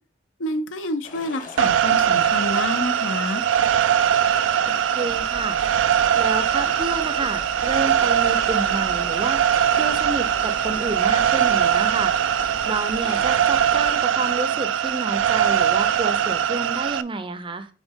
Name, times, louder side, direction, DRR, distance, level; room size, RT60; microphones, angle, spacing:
voice 1, 0.4-3.4, left 2 dB, 75° left, 9 dB, 0.8 m, -28 dB
sound 1, 1.0-13.5, left 3 dB, 45° left, 1.2 m, -40 dB
sound 2, 1.6-17.0, right 9 dB, 70° right, 0.4 m, -21 dB
voice 2, 4.9-5.6 6.1-12.2 12.7-17.7, right 3 dB, 25° right, 11 dB, 0.6 m, -29 dB
sound 3, 5.1-13.9, right 1 dB, 90° right, 1.9 m, -42 dB
6.2 x 4.4 x 3.6 m, 0.38 s
head